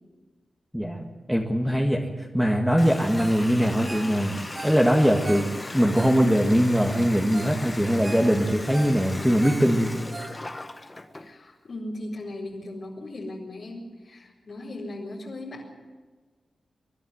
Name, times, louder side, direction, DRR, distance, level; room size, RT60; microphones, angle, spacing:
voice 1, 0.7-4.4 4.6-5.5 5.7-10.0, equal, ahead, -1 dB, 1.9 m, -22 dB
Water tap faucet, 2.8-11.3, left 2 dB, 25° left, 1.5 m, -37 dB
Ringtone, 3.2-3.5 3.7-6.6 7.0-7.1 7.3-7.6 7.9-10.8 11.2-11.3, right 3 dB, 45° right, 2.7 m, -41 dB
voice 2, 11.1-15.6, left 1 dB, 65° left, -5 dB, 4.3 m, -37 dB
24.5 x 11.0 x 9.4 m, 1.4 s
cardioid pair, 65°, 0 cm